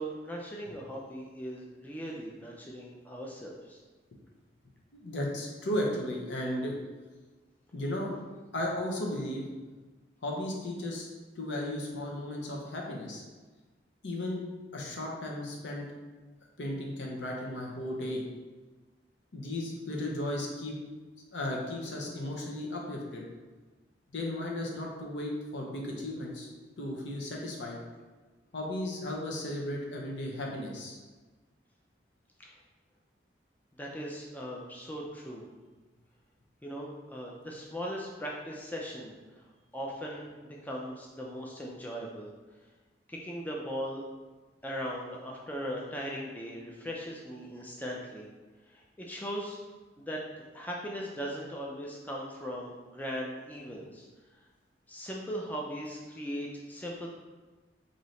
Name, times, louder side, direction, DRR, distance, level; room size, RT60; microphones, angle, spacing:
voice 1, 0.0-3.8 32.4-32.5 33.8-35.5 36.6-39.2 39.7-42.3 43.1-44.0 44.6-48.3 48.7-49.6 50.0-50.2 50.5-54.1 54.9-57.1, equal, 10° left, -2 dB, 0.3 m, -39 dB
voice 2, 4.9-6.7 7.7-8.1 8.5-9.4 10.2-13.2 14.0-14.4 14.7-15.9 16.6-18.2 19.3-20.7 21.3-23.2 24.1-26.5 26.8-27.8 28.5-31.0, left 1 dB, 80° left, -1 dB, 0.7 m, -35 dB
3.9 x 2.7 x 3.1 m, 1.3 s
head